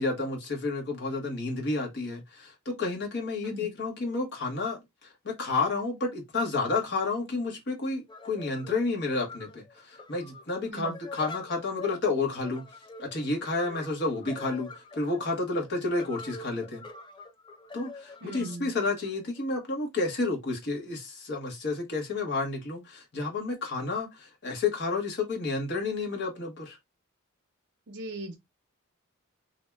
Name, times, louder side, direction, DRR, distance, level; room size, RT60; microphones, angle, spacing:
voice 1, 0.0-12.6 13.0-16.8 17.7-26.8, left 3 dB, 55° left, 1.1 m, -31 dB
sound 1, 8.1-19.7, left 3 dB, 20° left, 0.4 m, -46 dB
voice 2, 18.2-18.7 27.9-28.4, right 1 dB, 55° right, 0.6 m, -39 dB
2.6 x 2.2 x 3.3 m
head